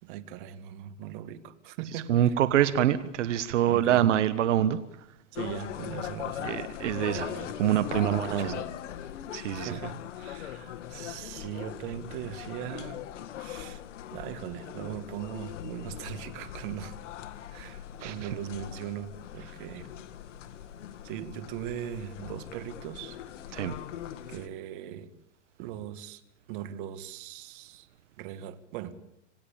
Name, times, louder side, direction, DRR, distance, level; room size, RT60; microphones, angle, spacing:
voice 1, 0.0-2.3 3.7-4.1 5.3-6.5 7.0-7.5 7.9-8.7 9.5-13.0 13.4-13.8 14.1-17.0 17.5-19.9 21.0-23.2 24.3-25.1 25.6-26.2 26.5-27.9 28.2-29.0, right 10 dB, 40° right, 2.0 m, -39 dB
voice 2, 1.9-4.8 6.4-7.3 7.6-8.6 9.3-9.7 18.0-18.3 23.5-23.8, right 11 dB, 70° right, 1.3 m, -25 dB
sound 1, 5.4-24.5, left 11 dB, 70° left, 1.7 m, -40 dB
27.0 x 19.0 x 8.7 m
supercardioid pair, 155°, 37 cm